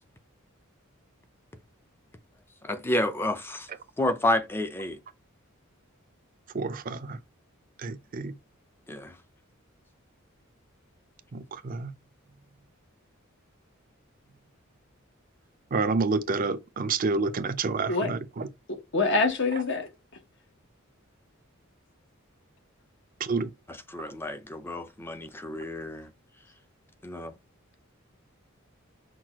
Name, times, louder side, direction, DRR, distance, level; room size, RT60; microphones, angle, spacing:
voice 1, 2.6-3.7 4.0-5.0 8.9-9.1 23.9-26.1 27.0-27.3, left 1 dB, 10° left, 0.5 m, -30 dB
voice 2, 6.5-7.2 7.8-8.3 11.3-11.9 15.7-18.5 23.2-23.5, right 4 dB, 40° right, 0.5 m, -29 dB
voice 3, 18.9-19.9, left 3 dB, 60° left, 1.1 m, -25 dB
6.0 x 2.3 x 2.9 m
head